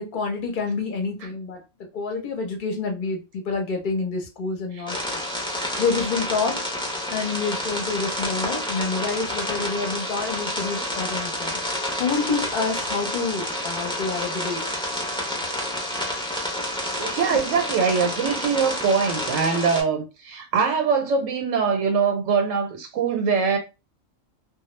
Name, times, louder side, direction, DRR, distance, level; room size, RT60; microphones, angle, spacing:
voice 1, 0.0-1.6 1.9-6.6 7.1-11.6 12.0-14.6 17.3-17.4, left 4 dB, 50° left, 0.7 m, -28 dB
sound 1, 4.9-19.8, left 1 dB, 5° left, 0.4 m, -29 dB
voice 2, 17.0-23.6, right 5 dB, 85° right, 1.0 m, -23 dB
2.2 x 2.1 x 3.0 m
omnidirectional pair, 1.3 m